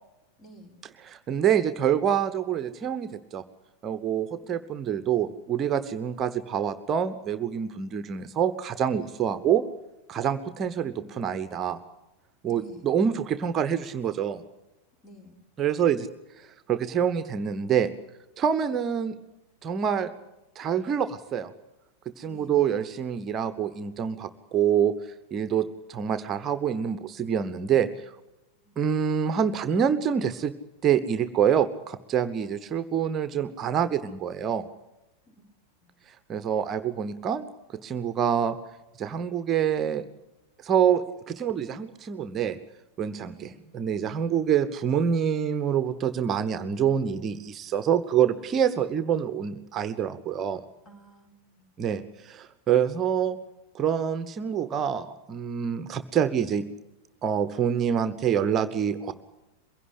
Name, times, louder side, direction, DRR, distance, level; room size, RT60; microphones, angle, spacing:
voice 1, 0.4-0.8 4.4-4.5 10.5-11.2 12.5-12.9 15.0-15.4 22.2-22.5 28.5-28.8 35.3-35.4 35.8-35.9 43.3-43.7 50.8-51.7, right 1 dB, 30° left, 4 dB, 4.7 m, -52 dB
voice 2, 1.0-3.4 3.8-9.6 10.1-11.8 12.4-14.4 15.6-16.1 16.4-17.9 18.4-19.2 19.6-20.1 20.5-21.5 22.2-28.1 28.8-30.5 30.8-34.6 36.3-38.6 39.0-40.0 40.6-42.6 43.0-43.3 43.7-50.6 51.8-53.4 53.7-56.6 57.2-59.1, right 8 dB, 25° right, 11 dB, 1.0 m, -26 dB
23.0 x 16.5 x 10.0 m, 0.95 s
figure-of-eight pair, 90°, 0 cm